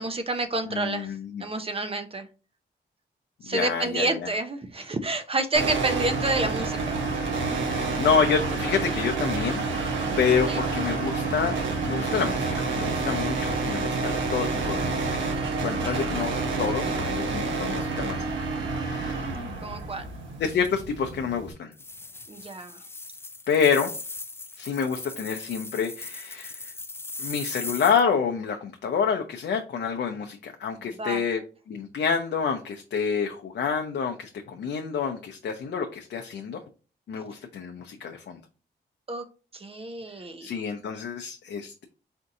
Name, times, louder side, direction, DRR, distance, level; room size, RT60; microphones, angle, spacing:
voice 1, 0.0-2.3 3.4-7.0 10.5-10.6 15.6-16.1 19.6-20.1 22.3-22.8 31.0-31.2 39.1-39.2 39.5-40.6, right 2 dB, 30° right, 8 dB, 0.6 m, -29 dB
voice 2, 0.7-1.4 3.5-4.3 7.7-11.5 11.9-15.2 15.6-16.3 16.6-18.2 18.8-19.2 20.4-21.7 23.5-23.9 24.6-26.7 27.2-31.4 31.7-36.6 37.1-38.4 40.4-41.9, left 6 dB, 65° left, 4 dB, 0.5 m, -28 dB
sound 1, 5.5-21.5, right 3 dB, 90° right, 1.0 m, -28 dB
sound 2, 21.7-28.0, left 3 dB, 15° left, 0.3 m, -39 dB
4.3 x 2.6 x 3.6 m, 0.36 s
cardioid pair, 70°, 19 cm